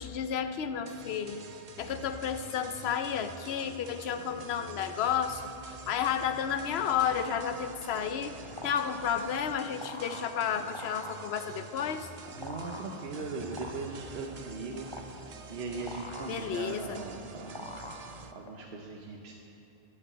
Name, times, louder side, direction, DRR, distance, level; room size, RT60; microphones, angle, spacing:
voice 1, 0.0-1.5 1.8-5.4 5.9-8.4 8.6-12.1 16.3-17.0, left 8 dB, 75° left, 10 dB, 0.9 m, -32 dB
sound 1, 0.8-18.3, right 4 dB, 45° right, 0.6 m, -48 dB
sound 2, 6.3-18.6, left 2 dB, 30° left, 0.8 m, -45 dB
voice 2, 12.3-14.9 15.5-17.8 18.3-19.3, right 3 dB, 75° right, 0 dB, 1.1 m, -39 dB
12.5 x 5.5 x 8.5 m, 2.7 s
omnidirectional pair, 1.1 m